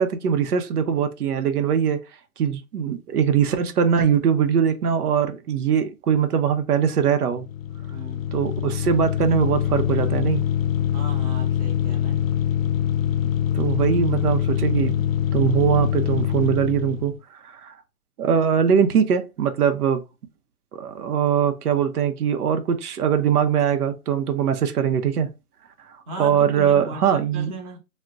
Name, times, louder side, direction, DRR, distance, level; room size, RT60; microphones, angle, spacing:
voice 1, 0.0-2.0 2.4-7.4 8.3-10.4 13.5-15.1 15.3-17.1 17.4-17.8 18.2-20.0 20.7-25.3 26.2-27.5, right 8 dB, 85° right, 0.7 m, -21 dB
sound 1, 7.3-17.2, left 10 dB, 65° left, 0.5 m, -24 dB
voice 2, 7.9-8.3 10.9-12.2 26.1-27.8, right 2 dB, 25° right, 0.8 m, -37 dB
2.3 x 2.1 x 3.6 m
hypercardioid pair, 150°, 44 cm